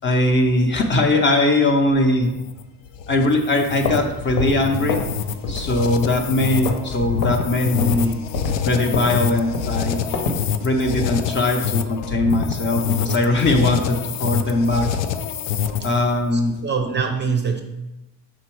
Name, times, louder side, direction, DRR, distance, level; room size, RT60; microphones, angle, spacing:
voice 1, 0.0-2.3 3.1-5.0 5.5-8.2 8.6-10.0 10.6-14.9 15.8-16.6, left 2 dB, 30° left, 3 dB, 0.6 m, -20 dB
sound 1, 2.2-16.1, left 7 dB, 90° left, 0.6 m, -26 dB
sound 2, 3.6-5.2 5.4-5.7 6.0-6.9 7.2-7.4 7.8-10.5, left 3 dB, 70° left, 1.0 m, -27 dB
voice 2, 16.3-17.6, right 5 dB, 25° right, 4 dB, 0.5 m, -24 dB
6.0 x 3.9 x 4.5 m, 0.96 s
cardioid pair, 150°, 42 cm